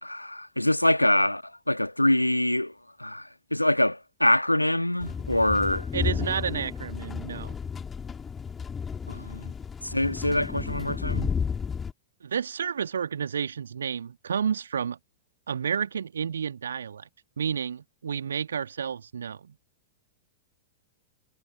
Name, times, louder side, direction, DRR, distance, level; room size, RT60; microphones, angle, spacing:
voice 1, 0.0-5.9 9.1-9.5 9.8-11.3, left 1 dB, 85° left, 2.0 m, -25 dB
sound 1, 5.0-11.9, left 6 dB, 20° left, 3.5 m, -32 dB
voice 2, 5.9-7.5 12.2-15.0 15.5-17.1 17.4-19.5, right 7 dB, 70° right, 2.0 m, -30 dB
figure-of-eight pair, 90°, 0 cm